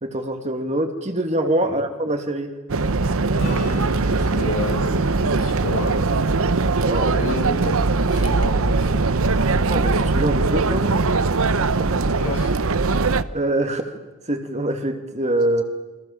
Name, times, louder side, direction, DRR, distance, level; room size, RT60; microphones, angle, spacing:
voice 1, 0.0-2.5 6.8-7.2 9.7-11.1 13.3-14.0 14.3-15.6, right 1 dB, 30° right, 5 dB, 2.5 m, -24 dB
sound 1, 2.7-13.2, right 3 dB, 65° right, 0.9 m, -20 dB
Acoustic guitar / Strum, 3.4-7.2 12.0-12.1, right 1 dB, 55° left, 4.7 m, -38 dB
voice 2, 4.2-6.2 7.2-7.8 8.1-9.0 12.2-12.5, left 1 dB, 75° left, 2 dB, 6.0 m, -30 dB
29.0 x 25.0 x 7.3 m, 1.1 s
head